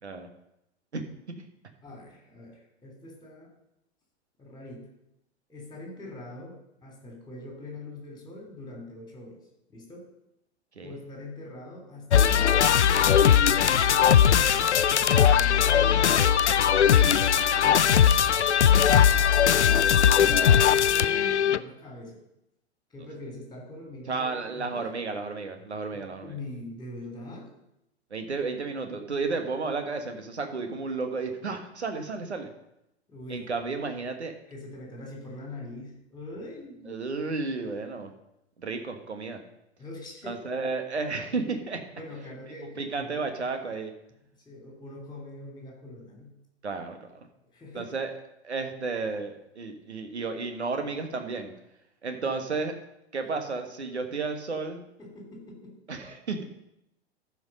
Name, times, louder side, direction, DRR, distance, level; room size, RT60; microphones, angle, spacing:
voice 1, 1.8-3.5 4.4-4.9 5.5-9.4 9.7-10.1 10.8-16.0 20.2-22.2 22.9-24.9 25.9-27.5 33.1-34.1 34.5-36.9 39.8-40.4 42.0-43.3 44.3-46.4 47.5-47.9 55.0-55.8, left 1 dB, 10° left, 1 dB, 3.1 m, -43 dB
sound 1, 12.1-21.6, left 8 dB, 80° left, 0.5 m, -20 dB
voice 2, 19.0-20.7 24.1-26.3 28.1-32.5 33.3-34.3 36.9-38.1 38.6-39.4 40.2-41.8 42.8-43.9 46.6-47.3 47.7-48.1 48.4-51.5 52.0-52.7 53.1-54.8 55.9-56.5, right 4 dB, 75° right, 6 dB, 1.6 m, -33 dB
14.0 x 5.1 x 5.3 m, 0.83 s
figure-of-eight pair, 100°, 34 cm